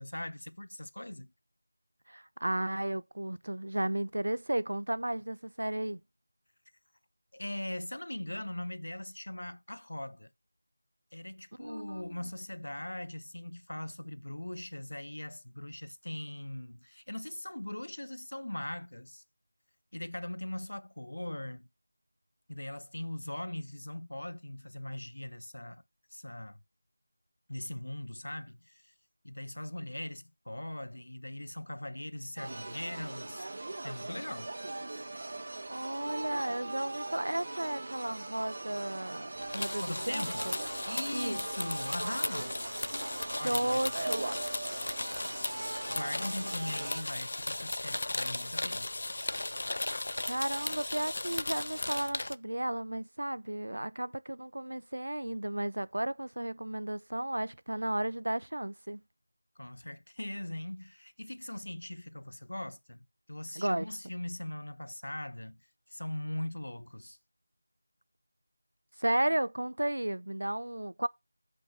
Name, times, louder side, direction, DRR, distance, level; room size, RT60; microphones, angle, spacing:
voice 1, 0.0-1.3 7.3-10.3 11.1-19.2 19.9-21.7 22.5-25.8 26.1-26.6 27.5-28.9 29.2-33.5 33.8-34.5 39.8-40.5 40.8-42.6 43.4-43.9 45.9-48.9 59.6-67.2, left 1 dB, 85° left, 1.1 m, -40 dB
voice 2, 2.1-6.0 11.6-12.2 35.7-40.5 41.1-41.4 43.2-44.4 50.2-59.0 63.6-63.9 69.0-71.1, right 1 dB, 80° right, 0.9 m, -34 dB
sound 1, 32.4-47.0, right 2 dB, 45° right, 1.7 m, -40 dB
sound 2, 39.4-52.3, left 2 dB, 55° left, 0.6 m, -36 dB
8.2 x 6.0 x 5.7 m
figure-of-eight pair, 175°, 0 cm